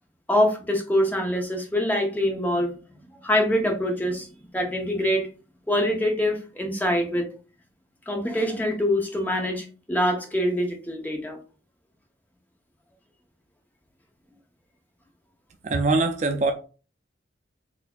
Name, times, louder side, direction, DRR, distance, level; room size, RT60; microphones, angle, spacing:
voice 1, 0.3-4.3 4.5-5.3 5.7-7.3 8.1-11.4, left 1 dB, 10° left, 0.6 m, -24 dB
voice 2, 15.6-16.5, right 3 dB, 35° right, 0.3 m, -22 dB
4.2 x 2.7 x 2.2 m
head